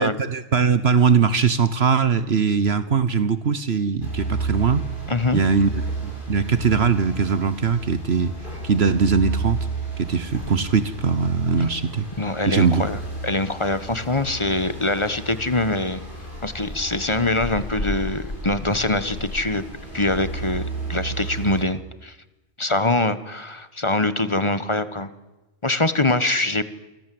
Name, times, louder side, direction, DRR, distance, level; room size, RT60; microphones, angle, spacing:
voice 1, 0.0-4.8 5.3-8.3 8.6-9.6 10.0-12.1 12.5-12.9, right 5 dB, 55° right, 14 dB, 1.3 m, -21 dB
sound 1, 4.0-21.6, right 3 dB, 40° left, 6.8 m, -32 dB
voice 2, 5.1-5.4 12.2-16.0 16.4-19.6 19.9-22.1 22.6-25.1 25.6-26.6, left 2 dB, 25° left, 14 dB, 1.3 m, -23 dB
28.5 x 24.5 x 7.8 m, 1.1 s
omnidirectional pair, 1.3 m